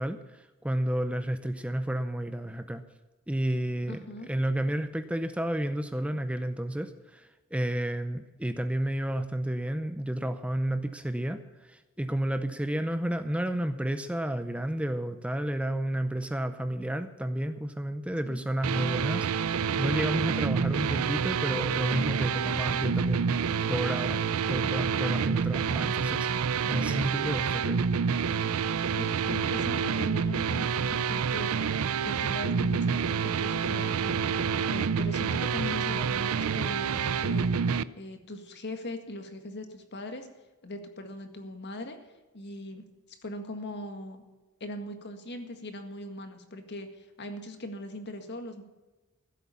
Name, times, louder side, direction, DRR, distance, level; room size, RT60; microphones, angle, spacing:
voice 1, 0.0-2.8 3.3-23.3 23.7-24.2 24.5-27.9, right 1 dB, 5° right, 9 dB, 0.6 m, -31 dB
voice 2, 3.9-4.3 18.2-18.4 29.0-31.5 32.0-40.3 40.6-42.0 42.3-42.8 43.2-44.2 44.6-48.6, left 1 dB, 50° left, 6 dB, 1.8 m, -40 dB
sound 1, 18.6-37.8, right 6 dB, 75° right, 0.5 m, -28 dB
15.5 x 8.4 x 7.1 m, 1.2 s
head